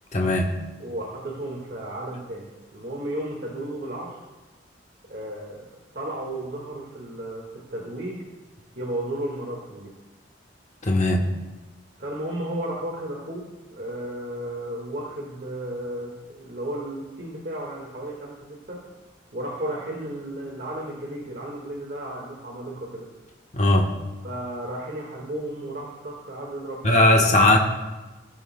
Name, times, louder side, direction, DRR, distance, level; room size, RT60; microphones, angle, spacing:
voice 1, 0.1-0.5 10.8-11.3 23.5-23.9 26.8-27.6, left 1 dB, 40° left, 1 dB, 1.1 m, -18 dB
voice 2, 0.8-2.5 2.7-4.2 5.1-5.7 5.9-7.4 7.7-8.2 8.8-9.9 12.0-13.4 13.7-18.8 19.3-23.1 24.2-27.2, right 1 dB, 50° right, -3 dB, 1.8 m, -33 dB
16.5 x 8.7 x 2.2 m, 1.1 s
head